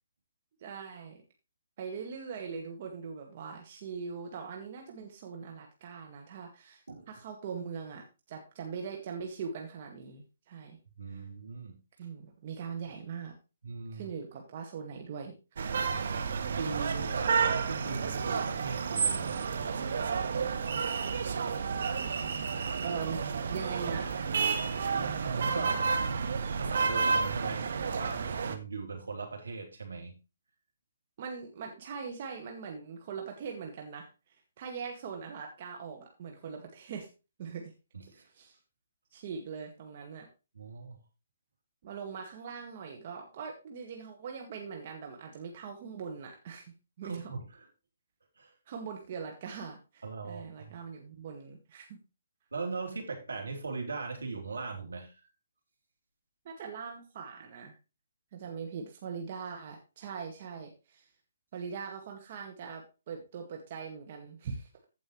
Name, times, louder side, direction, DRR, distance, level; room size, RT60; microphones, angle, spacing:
voice 1, 0.6-1.2 1.8-10.8 11.1-11.2 12.0-13.3 13.9-15.3 22.8-24.3 24.8-25.0 31.2-37.1 37.4-37.7 38.1-38.6 39.1-40.3 41.8-47.3 48.7-52.0 56.5-57.7 58.3-61.1 61.5-64.7, right 6 dB, 45° right, 2 dB, 1.8 m, -41 dB
voice 2, 11.0-11.7 13.6-14.1 16.6-19.4 23.6-23.7 24.7-26.0 26.5-30.1 37.9-38.2 40.5-41.0 47.0-47.7 48.4-48.5 50.0-50.7 52.5-55.1, right 4 dB, 75° right, 2 dB, 3.3 m, -39 dB
sound 1, 15.6-28.6, right 5 dB, 60° right, 1.4 m, -31 dB
15.0 x 5.5 x 3.2 m, 0.29 s
figure-of-eight pair, 135°, 0 cm